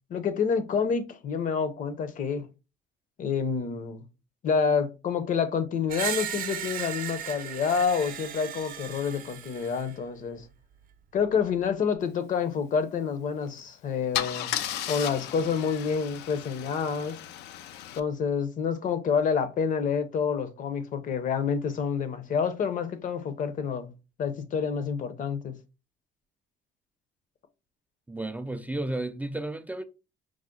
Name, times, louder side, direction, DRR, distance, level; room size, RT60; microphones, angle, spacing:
voice 1, 0.1-2.5 3.2-4.0 4.4-10.5 11.1-14.5 14.9-17.2 17.9-23.9 24.2-25.5, left 6 dB, 50° left, 0.7 m, -28 dB
Screech, 5.9-9.9, right 9 dB, 55° right, 0.6 m, -36 dB
Car / Engine starting / Idling, 13.4-13.6 14.1-18.0, left 11 dB, 85° left, 0.4 m, -35 dB
voice 2, 28.1-29.8, right 2 dB, 10° right, 0.3 m, -33 dB
4.9 x 2.0 x 3.7 m
cardioid pair, 110°, 17 cm